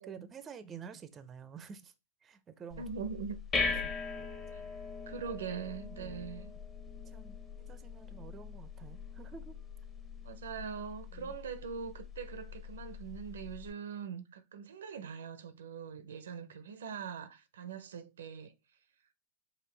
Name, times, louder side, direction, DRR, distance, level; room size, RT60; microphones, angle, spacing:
voice 1, 0.0-1.9 2.2-2.9 3.8-4.3 4.5-4.7 6.0-6.3 7.0-9.6 11.1-11.4 16.5-16.6, right 7 dB, 25° right, 0.5 m, -50 dB
sound 1, 2.7-13.7, left 4 dB, 20° left, 0.8 m, -41 dB
voice 2, 2.8-3.4 4.5-4.6 5.1-6.5 10.2-18.5, right 6 dB, 85° right, 0.5 m, -42 dB
5.0 x 2.5 x 3.2 m
hypercardioid pair, 120°, 0 cm